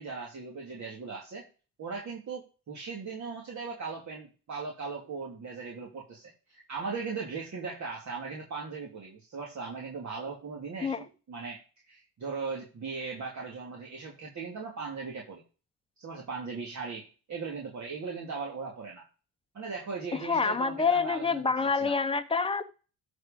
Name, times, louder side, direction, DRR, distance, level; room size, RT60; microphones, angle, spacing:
voice 1, 0.0-1.4 1.8-15.4 16.0-19.0 19.5-22.0, right 4 dB, 45° right, 2.9 m, -38 dB
voice 2, 20.1-22.6, left 5 dB, 15° left, 0.9 m, -27 dB
13.5 x 4.9 x 5.3 m
cardioid pair, 105°, 38 cm